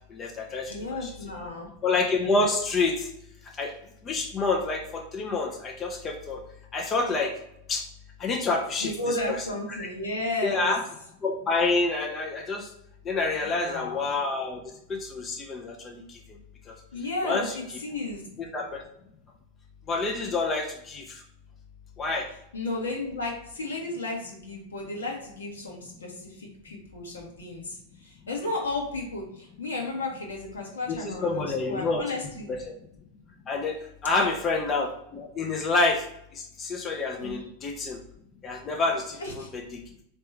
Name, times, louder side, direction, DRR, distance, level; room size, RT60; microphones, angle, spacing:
voice 1, 0.1-1.1 1.8-3.1 3.6-3.7 4.0-6.4 6.7-7.3 7.7-7.8 8.2-9.4 9.7-9.9 10.4-10.8 11.2-12.7 13.0-14.6 14.9-16.2 16.7-16.8 17.2-17.6 18.4-18.8 19.9-21.2 22.0-22.3 30.9-32.0 32.5-32.7 33.5-33.8 34.0-36.0 36.3-38.0 38.4-39.6, left 3 dB, 25° left, 2 dB, 0.6 m, -28 dB
voice 2, 0.7-1.7 8.8-10.7 13.4-14.1 16.9-18.4 22.5-32.5 34.1-34.3 37.2-37.4 39.2-39.5, left 2 dB, 70° left, -1 dB, 1.3 m, -33 dB
4.3 x 2.9 x 3.3 m, 0.78 s
figure-of-eight pair, 90°, 0 cm